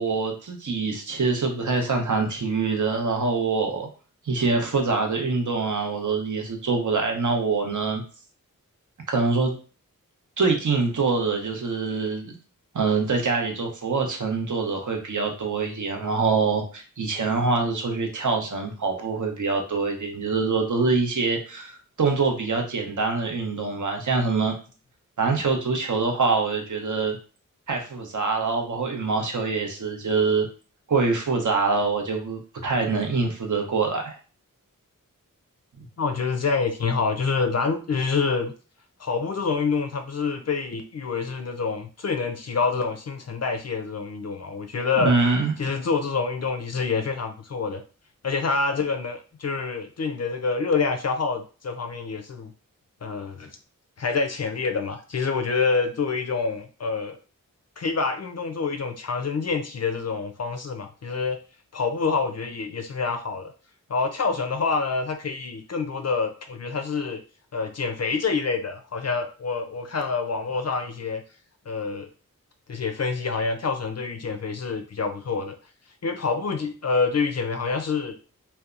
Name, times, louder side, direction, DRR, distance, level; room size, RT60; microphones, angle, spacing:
voice 1, 0.0-3.9 4.2-8.0 9.1-9.6 10.4-12.3 12.7-24.5 25.2-27.2 27.7-30.5 30.9-34.1 45.0-45.5, right 4 dB, 60° right, 3 dB, 0.7 m, -24 dB
voice 2, 36.0-38.5 39.0-45.1 45.6-47.8 48.2-52.5 53.0-53.5 54.0-57.2 57.8-61.4 61.7-63.5 63.9-67.2 67.5-71.2 71.7-72.1 72.7-75.6 76.0-78.1, left 4 dB, 50° left, 6 dB, 0.4 m, -27 dB
2.7 x 2.2 x 2.4 m, 0.37 s
cardioid pair, 40°, 34 cm